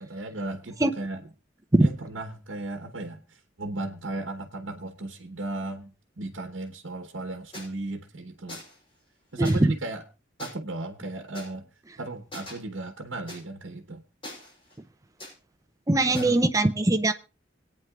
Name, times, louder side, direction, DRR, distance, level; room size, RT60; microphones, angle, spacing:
voice 1, 0.0-1.3 1.8-8.6 9.3-10.0 10.4-11.6 12.0-14.0 16.0-16.4, right 2 dB, 75° right, 5 dB, 1.1 m, -36 dB
sound 1, 7.5-7.7 8.5-8.8 9.4-9.6 10.4-10.5 11.3-11.5 12.3-12.5 13.3-13.4 14.2-14.8 15.2-15.3 16.1-16.4, left 1 dB, 25° left, 7.6 m, -41 dB
voice 2, 9.4-9.7 15.9-17.1, right 2 dB, 15° right, 9 dB, 0.6 m, -21 dB
25.0 x 9.2 x 2.4 m, 0.32 s
head